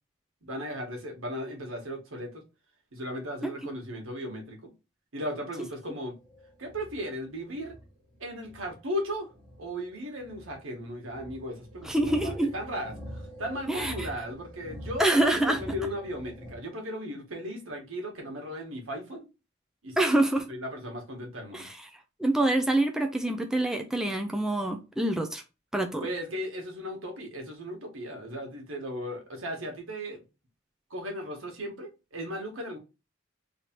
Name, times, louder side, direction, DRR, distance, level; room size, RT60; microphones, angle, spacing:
voice 1, 0.4-2.4 2.9-4.7 5.1-6.1 6.6-7.8 8.2-9.3 9.6-11.9 12.2-19.3 19.8-20.2 20.5-21.7 26.0-30.2 30.9-32.8, equal, 90° right, 1.4 m, -36 dB
sound 1, 6.1-16.5, equal, 20° right, 1.1 m, -45 dB
voice 2, 11.8-12.5 13.7-14.1 15.0-15.6 20.0-20.5 21.5-21.8 22.2-25.4 25.7-26.1, right 1 dB, 5° right, 0.4 m, -26 dB
3.2 x 2.7 x 4.2 m
head